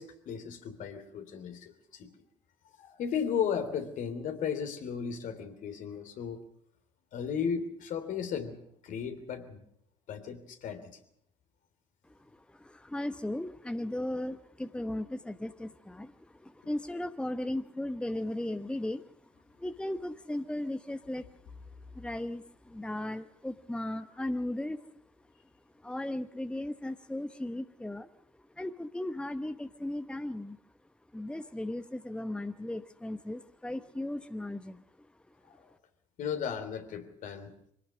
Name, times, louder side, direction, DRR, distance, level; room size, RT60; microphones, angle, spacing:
voice 1, 0.0-2.1 2.8-6.4 7.1-9.6 10.1-11.0 35.5-35.6 36.2-37.5, left 7 dB, 55° left, 8 dB, 3.3 m, -35 dB
voice 2, 12.0-19.3 19.6-24.9 25.7-30.6 31.1-35.4, left 1 dB, 5° left, 11 dB, 1.1 m, -37 dB
25.0 x 18.0 x 6.3 m, 0.71 s
figure-of-eight pair, 55°, 16 cm